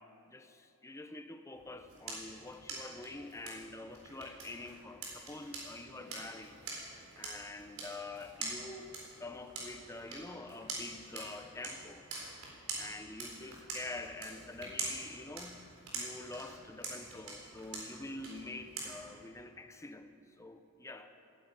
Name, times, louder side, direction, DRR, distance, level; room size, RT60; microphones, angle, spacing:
voice 1, 0.0-6.6 7.2-8.9 9.2-12.0 12.7-15.6 15.9-20.1 20.4-21.2, left 2 dB, 15° left, 0.7 m, -46 dB
sound 1, 1.5-19.3, right 3 dB, 75° right, 4.2 m, -45 dB
15.5 x 9.8 x 9.0 m
head